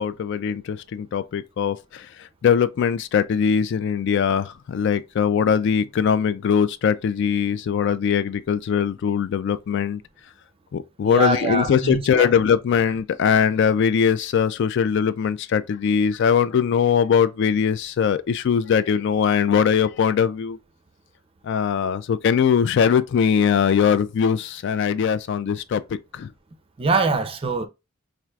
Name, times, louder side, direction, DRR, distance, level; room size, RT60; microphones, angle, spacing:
voice 1, 0.0-10.0 10.7-20.6 21.4-26.3, left 7 dB, 60° left, 0.3 m, -21 dB
voice 2, 11.0-12.3 26.8-27.7, right 3 dB, 25° right, 0.4 m, -23 dB
4.4 x 2.5 x 2.3 m
head